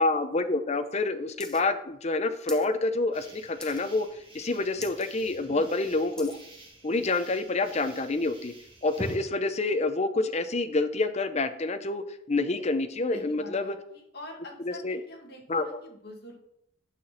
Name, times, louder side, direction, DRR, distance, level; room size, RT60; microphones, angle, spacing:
voice 1, 0.0-4.1 4.3-6.4 6.8-8.5 8.8-13.7 14.6-15.0 15.5-15.8, left 3 dB, 35° left, 9 dB, 0.6 m, -27 dB
sound 1, 1.4-1.6 1.9-2.7 3.1-3.3 3.6-4.0 4.4-4.5 4.7-5.1 5.5-6.4 7.1-7.2, left 1 dB, 5° left, 0.8 m, -44 dB
sound 2, 3.1-9.2, right 1 dB, 30° right, 2.0 m, -46 dB
voice 2, 13.1-16.4, left 1 dB, 55° left, 0 dB, 2.0 m, -45 dB
9.2 x 6.0 x 4.2 m, 0.75 s
head